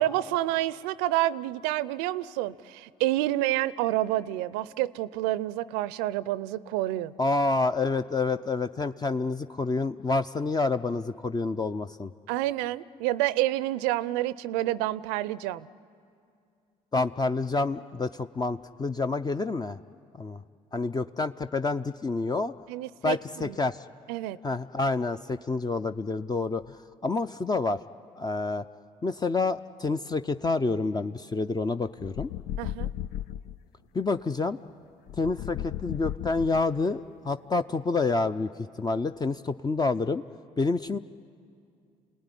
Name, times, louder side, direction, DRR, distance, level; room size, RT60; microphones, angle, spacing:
voice 1, 0.0-7.1 12.3-15.7 22.7-23.6 24.1-24.4 32.6-32.9, right 15 dB, 85° right, 18 dB, 0.6 m, -28 dB
voice 2, 7.2-12.1 16.9-19.8 20.1-20.4 20.7-22.5 23.0-23.8 24.4-27.8 28.2-28.7 29.0-32.3 33.9-34.6 35.2-38.5 38.8-40.2 40.6-41.0, left 3 dB, 25° left, 9 dB, 0.6 m, -28 dB
sound 1, 32.0-33.6 35.1-36.9, left 12 dB, 70° left, 0.5 m, -35 dB
28.5 x 18.5 x 9.9 m, 2.4 s
supercardioid pair, 65°, 16 cm